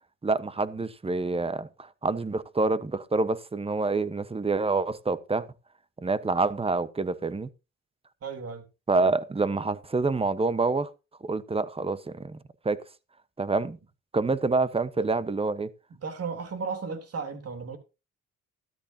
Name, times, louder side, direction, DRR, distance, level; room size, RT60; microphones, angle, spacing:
voice 1, 0.2-5.4 6.0-7.5 8.9-10.9 11.2-12.4 12.6-12.8 13.4-13.8 14.1-15.7, right 3 dB, 20° right, 1.1 m, -27 dB
voice 2, 8.2-8.6 15.0-15.1 16.0-17.8, right 5 dB, 55° right, 3.4 m, -34 dB
13.5 x 12.5 x 2.8 m
cardioid pair, 90°, 30 cm